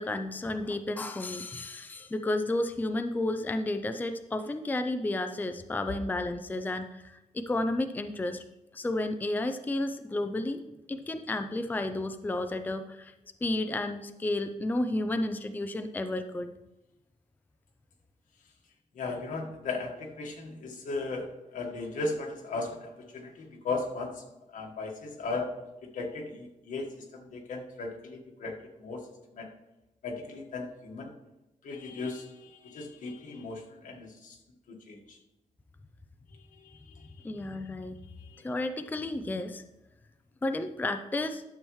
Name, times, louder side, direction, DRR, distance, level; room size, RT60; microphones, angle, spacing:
voice 1, 0.0-8.4 8.7-10.6 10.9-13.1 13.4-16.5 37.2-38.0 38.4-39.6 40.4-41.4, left 2 dB, 15° left, 8 dB, 0.4 m, -32 dB
voice 2, 18.9-24.2 24.5-25.6 25.8-29.1 29.3-29.5 30.0-31.1 31.6-34.4 34.7-35.2 36.6-37.4 38.2-38.5, left 3 dB, 85° left, 1 dB, 1.6 m, -37 dB
12.0 x 7.0 x 3.2 m, 0.97 s
wide cardioid pair, 140°, 13 cm